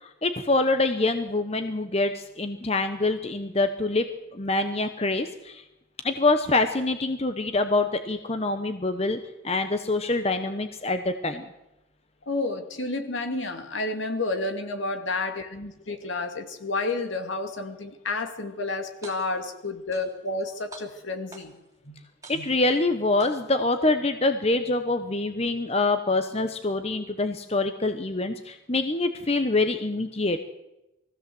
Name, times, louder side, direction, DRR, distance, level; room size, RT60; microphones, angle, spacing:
voice 1, 0.2-5.6 6.0-9.2 9.4-11.4 22.3-30.4, left 2 dB, 30° left, 8 dB, 1.0 m, -25 dB
voice 2, 12.3-21.5 21.8-22.0 22.3-22.5, left 2 dB, 75° left, 6 dB, 2.4 m, -30 dB
sound 1, 18.9-19.5 19.9-20.4 20.7-21.7 22.2-22.8 23.2-23.8, right 2 dB, 15° right, 3.2 m, -47 dB
21.5 x 15.5 x 7.8 m, 0.93 s
head